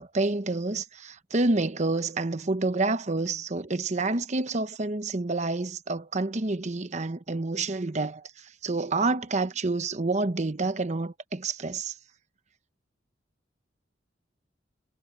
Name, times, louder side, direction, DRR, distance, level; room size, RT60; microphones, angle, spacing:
voice 1, 0.0-11.9, right 3 dB, 40° right, 0.9 m, -28 dB
head